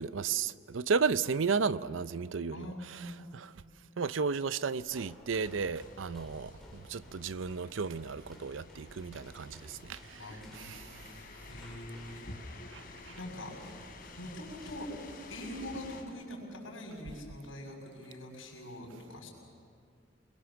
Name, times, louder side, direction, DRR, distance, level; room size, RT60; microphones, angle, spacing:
voice 1, 0.0-3.5 4.0-10.2 10.6-11.0 12.7-13.1, right 5 dB, 75° right, 0.6 m, -34 dB
voice 2, 2.5-3.3 10.1-12.7 13.1-13.5 14.2-14.9 15.3-19.3, left 1 dB, 75° left, 6.5 m, -44 dB
sound 1, 4.8-15.5, left 1 dB, ahead, 3.4 m, -57 dB
sound 2, 5.4-16.0, left 2 dB, 50° left, 3.1 m, -51 dB
28.5 x 22.5 x 7.1 m
head